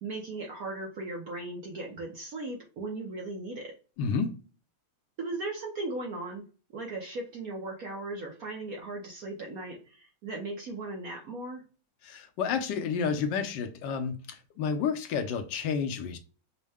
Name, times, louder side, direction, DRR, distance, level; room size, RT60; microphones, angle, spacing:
voice 1, 0.0-3.7 5.2-6.4 6.7-11.6, right 2 dB, 65° right, 0.9 m, -37 dB
voice 2, 4.0-4.3 12.0-16.2, left 6 dB, 70° left, 1.1 m, -30 dB
5.3 x 2.1 x 3.4 m
omnidirectional pair, 2.3 m